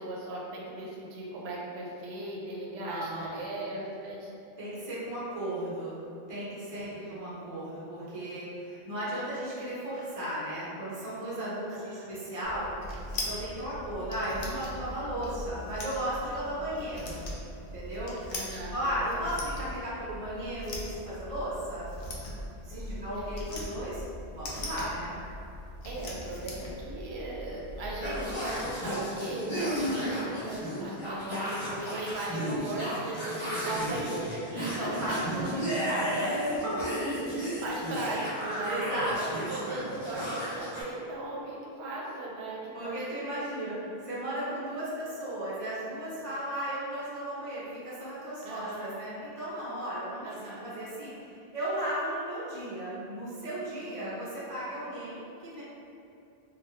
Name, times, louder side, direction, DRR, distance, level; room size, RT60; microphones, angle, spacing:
voice 1, 0.0-4.3 6.8-7.2 11.7-12.1 16.5-16.9 18.3-18.8 19.1-19.4 22.7-23.2 25.8-35.5 37.0-43.9 48.4-48.9 50.2-50.7 53.8-54.4, right 1 dB, 90° right, -4 dB, 0.8 m, -38 dB
voice 2, 2.8-3.4 4.6-12.7 13.3-17.2 17.7-18.1 18.7-21.9 22.6-24.0 24.3-25.1 34.5-36.9 38.6-39.4 42.7-43.8 44.1-50.3 50.6-55.6, right 1 dB, 35° right, -9 dB, 0.8 m, -35 dB
sound 1, 12.4-28.7, left 1 dB, 70° left, 0.8 m, -40 dB
sound 2, 28.0-40.8, equal, 30° left, 0.7 m, -33 dB
3.3 x 2.2 x 2.7 m, 2.6 s
omnidirectional pair, 1.1 m